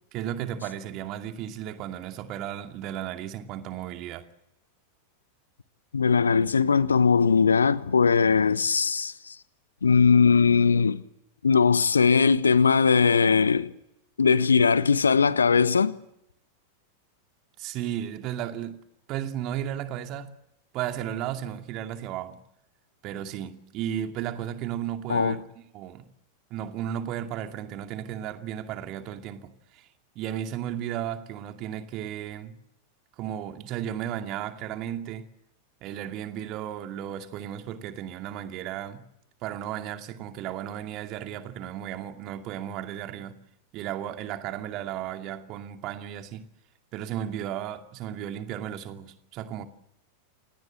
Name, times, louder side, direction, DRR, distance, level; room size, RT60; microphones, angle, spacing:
voice 1, 0.1-4.3 17.6-18.8 19.1-20.3 20.7-22.4 23.0-26.1 26.5-29.9 30.2-32.6 33.2-35.3 35.8-39.0 39.4-43.4 43.7-46.4 46.9-49.7, right 10 dB, 40° right, 2.4 m, -34 dB
voice 2, 5.9-9.3 9.8-11.0 11.4-13.7 14.2-15.9 25.1-25.4, left 5 dB, 75° left, 1.1 m, -20 dB
28.0 x 18.5 x 7.8 m
figure-of-eight pair, 90°, 0 cm